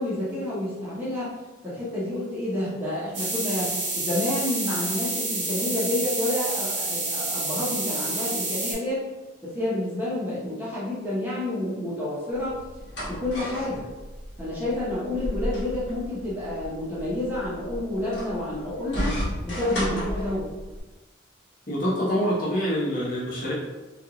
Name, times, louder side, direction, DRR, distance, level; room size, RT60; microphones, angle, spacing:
voice 1, 0.0-1.3 1.6-9.0 9.4-12.6 13.1-13.9 14.4-19.2 19.4-20.5, left 1 dB, 10° right, -9 dB, 0.7 m, -29 dB
sound 1, 3.1-8.7, right 2 dB, 75° right, 1.0 m, -29 dB
sound 2, 12.3-20.8, equal, 70° left, 1.0 m, -33 dB
voice 2, 21.7-23.5, equal, 45° left, -7 dB, 0.9 m, -25 dB
2.5 x 2.3 x 2.8 m, 1.1 s
head